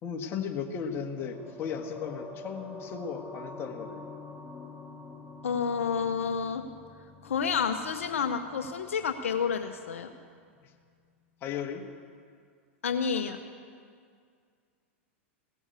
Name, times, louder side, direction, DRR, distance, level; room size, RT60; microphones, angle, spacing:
voice 1, 0.0-4.1 10.6-10.7 11.4-11.8, left 7 dB, 35° left, 3 dB, 1.5 m, -36 dB
sound 1, 1.2-9.8 10.1-10.2, left 3 dB, 10° left, 2.1 m, -46 dB
voice 2, 5.4-6.6 7.2-10.1 12.8-13.4, left 6 dB, 80° left, 7 dB, 0.8 m, -29 dB
17.0 x 7.1 x 8.2 m, 2.1 s
hypercardioid pair, 105°, 7 cm